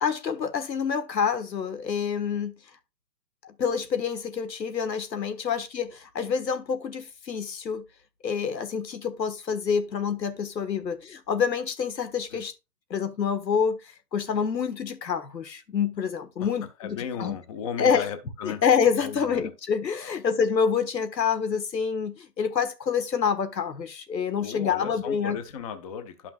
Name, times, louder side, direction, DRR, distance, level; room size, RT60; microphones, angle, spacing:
voice 1, 0.0-2.6 3.4-7.8 8.2-12.5 12.9-17.4 17.8-18.1 18.4-25.4, left 6 dB, 90° left, 1.5 m, -27 dB
voice 2, 16.8-18.6 19.0-19.5 20.0-20.2 24.4-26.3, left 7 dB, 25° left, 0.6 m, -35 dB
11.0 x 5.8 x 2.4 m
hypercardioid pair, 140°, 49 cm